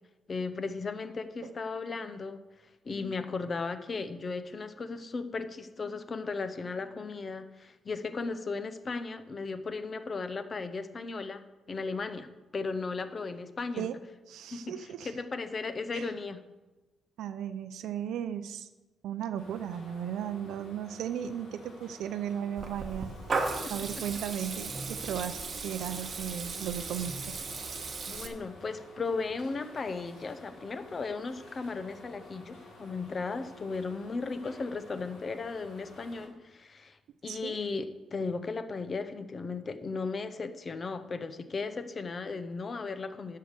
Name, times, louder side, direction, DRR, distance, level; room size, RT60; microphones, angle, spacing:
voice 1, 0.3-2.4 2.8-11.4 11.7-12.3 12.5-13.9 14.5-16.4 23.6-23.7 28.1-37.0 37.2-43.4, left 4 dB, 30° left, 11 dB, 0.6 m, -36 dB
voice 2, 14.3-15.2 15.9-16.1 17.2-18.7 19.0-23.1 23.7-27.4 37.3-37.6, right 9 dB, 80° right, 10 dB, 0.5 m, -36 dB
sound 1, 19.3-36.3, left 2 dB, 60° left, 3.7 m, -52 dB
Water tap faucet / Liquid, 22.6-28.3, right 4 dB, 30° right, 1.2 m, -36 dB
11.0 x 6.6 x 6.7 m, 1.1 s
cardioid pair, 165°, 0 cm